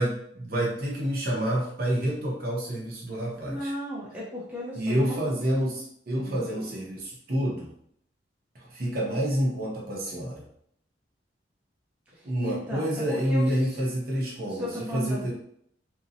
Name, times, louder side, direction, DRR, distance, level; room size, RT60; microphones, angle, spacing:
voice 1, 0.0-3.7 4.7-7.7 8.5-10.5 12.2-15.3, equal, 50° right, -2 dB, 0.7 m, -28 dB
voice 2, 3.4-5.2 6.2-6.5 12.4-13.5 13.7-13.8 14.5-15.3, equal, 10° right, -7 dB, 0.5 m, -35 dB
2.7 x 2.0 x 2.6 m, 0.67 s
head